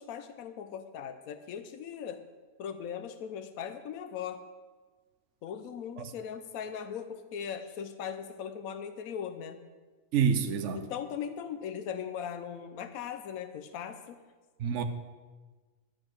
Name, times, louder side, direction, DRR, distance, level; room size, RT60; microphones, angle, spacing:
voice 1, 0.0-2.2 2.6-4.4 5.4-9.6 10.7-14.2, left 8 dB, 80° left, 1.2 m, -39 dB
voice 2, 10.1-10.9 14.6-14.8, right 7 dB, 60° right, 1.1 m, -27 dB
12.5 x 8.8 x 6.4 m
omnidirectional pair, 1.5 m